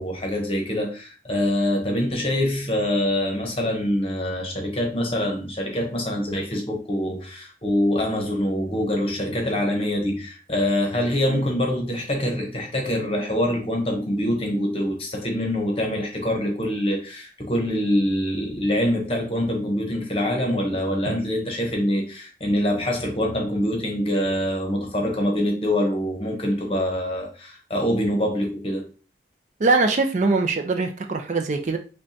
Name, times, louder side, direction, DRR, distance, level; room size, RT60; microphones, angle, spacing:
voice 1, 0.0-28.9, left 1 dB, 30° left, 0.9 m, -25 dB
voice 2, 29.6-31.8, right 3 dB, 40° right, 0.4 m, -22 dB
5.2 x 2.2 x 2.7 m
head